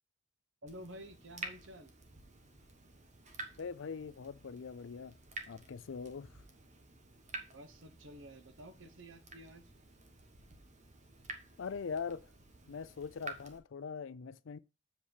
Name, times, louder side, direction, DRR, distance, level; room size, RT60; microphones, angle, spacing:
voice 1, 0.6-1.9 7.5-9.7, equal, 70° right, 1.1 m, -51 dB
Water tap faucet / Drip, 0.7-13.6, right 2 dB, 40° right, 1.2 m, -50 dB
voice 2, 3.6-5.2 5.5-6.4 11.6-12.3 12.7-14.6, left 5 dB, 75° left, 0.4 m, -42 dB
7.5 x 4.2 x 4.8 m
head